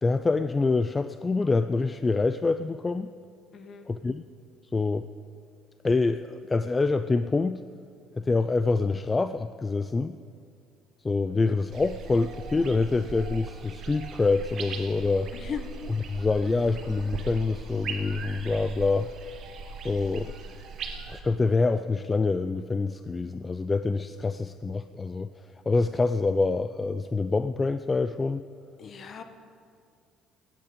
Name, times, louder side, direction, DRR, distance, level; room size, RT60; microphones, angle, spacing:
voice 1, 0.0-3.1 3.9-4.2 4.7-5.1 5.8-7.6 8.2-10.2 11.0-15.3 16.1-19.1 19.8-20.4 21.1-25.3 25.7-28.5, left 3 dB, 20° left, 11 dB, 0.3 m, -26 dB
voice 2, 3.5-3.9 15.3-15.7 28.8-29.2, left 7 dB, 40° left, 8 dB, 1.0 m, -37 dB
sound 1, 11.7-21.2, right 4 dB, 50° right, 1.2 m, -39 dB
16.5 x 9.2 x 5.2 m, 2.3 s
cardioid pair, 115°, 0 cm